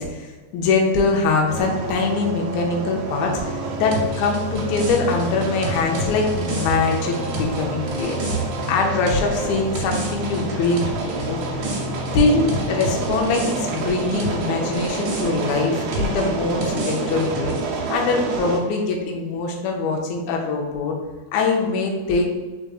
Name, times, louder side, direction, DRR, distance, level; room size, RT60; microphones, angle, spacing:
voice 1, 0.0-8.2 8.7-11.6 12.1-17.6 17.9-21.0 21.3-22.3, left 3 dB, 75° left, 0 dB, 1.9 m, -23 dB
sound 1, 1.5-18.6, right 3 dB, 85° right, 1.3 m, -28 dB
sound 2, 3.9-14.5 14.7-17.6, right 1 dB, 65° right, 1.4 m, -31 dB
4.6 x 4.0 x 2.3 m, 1.3 s
omnidirectional pair, 3.5 m